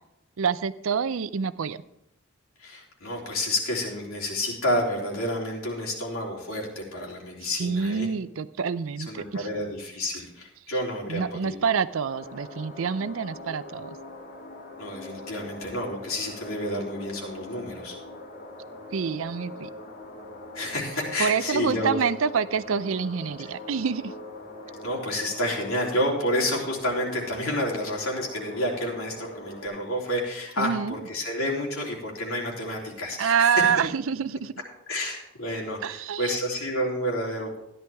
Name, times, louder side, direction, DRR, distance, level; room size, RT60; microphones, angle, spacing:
voice 1, 0.4-1.8 7.6-9.5 11.1-14.0 18.9-19.7 21.2-24.1 30.6-30.9 33.2-34.5 35.8-36.4, right 6 dB, 70° right, 15 dB, 0.5 m, -27 dB
voice 2, 2.6-8.1 9.0-11.7 14.8-18.0 20.5-22.0 24.7-33.6 34.9-37.6, left 1 dB, 85° left, -2 dB, 3.4 m, -30 dB
sound 1, 12.0-29.7, left 2 dB, 55° left, 2.7 m, -42 dB
13.5 x 11.0 x 3.5 m, 0.85 s
head